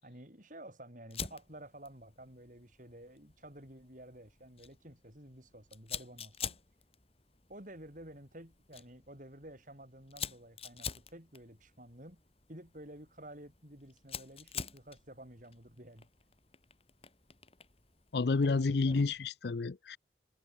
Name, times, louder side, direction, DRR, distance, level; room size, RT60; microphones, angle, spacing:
voice 1, 0.0-6.6 7.5-12.2 12.5-16.1 18.4-19.0, right 1 dB, 45° right, 7.3 m, -51 dB
Fire, 1.1-19.3, left 7 dB, 35° left, 3.9 m, -48 dB
voice 2, 18.1-20.0, left 4 dB, 65° left, 0.5 m, -30 dB
head